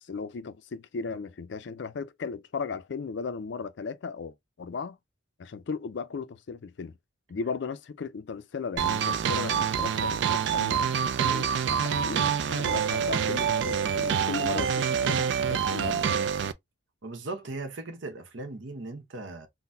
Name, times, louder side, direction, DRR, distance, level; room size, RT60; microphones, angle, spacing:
voice 1, 0.0-5.0 5.4-7.0 7.3-16.1, left 5 dB, 65° left, 0.4 m, -36 dB
sound 1, 8.8-16.5, right 7 dB, 65° right, 0.3 m, -26 dB
voice 2, 17.0-19.5, right 2 dB, 85° right, 0.9 m, -38 dB
3.8 x 2.1 x 2.6 m
head